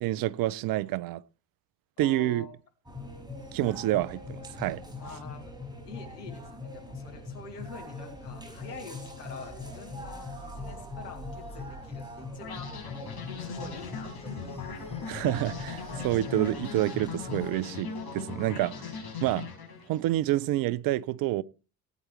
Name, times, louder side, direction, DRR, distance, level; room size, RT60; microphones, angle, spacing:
voice 1, 0.0-1.2 2.0-2.5 3.5-4.8 15.1-18.7 19.2-19.5 19.9-21.4, right 15 dB, 50° right, 0.6 m, -28 dB
voice 2, 2.0-2.5 5.0-5.5 5.8-12.8 13.4-14.7 18.5-18.9, left 4 dB, 80° left, 2.6 m, -46 dB
sound 1, 2.9-17.5, left 2 dB, 10° right, 6.1 m, -42 dB
sound 2, 7.9-19.9, left 1 dB, 15° left, 3.9 m, -53 dB
sound 3, 12.4-20.1, left 5 dB, 50° left, 6.0 m, -39 dB
18.5 x 9.2 x 3.2 m
figure-of-eight pair, 45°, 47 cm